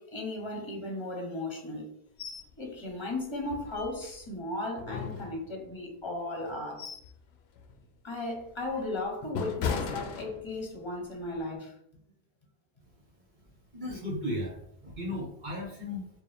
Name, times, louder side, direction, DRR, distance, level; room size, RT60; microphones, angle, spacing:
voice 1, 0.0-1.9 2.6-6.8 8.0-11.7, left 2 dB, 30° left, 1.0 m, -36 dB
sound 1, 2.2-2.5 2.9-3.0 3.5-4.3 4.8-5.8 6.4-7.2 7.6-7.8 8.4-10.8 11.2-11.4, left 6 dB, 80° left, 0.8 m, -37 dB
voice 2, 13.7-16.1, left 1 dB, 50° right, 1.0 m, -35 dB
4.5 x 2.2 x 3.4 m
omnidirectional pair, 1.1 m